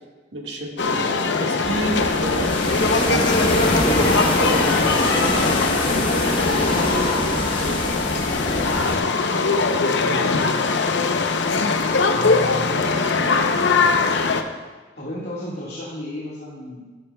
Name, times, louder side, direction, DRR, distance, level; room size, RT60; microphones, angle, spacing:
voice 1, 0.3-1.0 1.4-2.5 2.9-7.1 7.5-8.8 12.7-13.7, right 1 dB, 90° right, 0 dB, 1.6 m, -31 dB
sound 1, 0.8-14.4, left 4 dB, 80° left, 0.7 m, -21 dB
sound 2, 1.6-9.0, left 1 dB, 30° left, 1.1 m, -24 dB
voice 2, 9.9-10.6 12.1-12.8 15.0-16.8, left 1 dB, 60° left, -6 dB, 1.8 m, -34 dB
13.5 x 10.5 x 2.3 m, 1.3 s
head